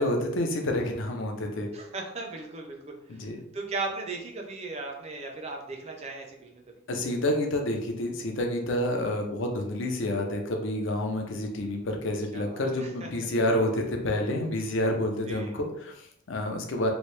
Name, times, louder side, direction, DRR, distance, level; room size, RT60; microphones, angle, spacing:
voice 1, 0.0-1.7 3.1-3.4 6.9-16.9, left 1 dB, 60° left, 2 dB, 0.6 m, -29 dB
voice 2, 1.7-3.0 3.5-6.6 12.3-13.1 15.3-15.6, right 3 dB, 30° right, 1 dB, 0.5 m, -37 dB
3.1 x 2.6 x 3.2 m, 0.76 s
head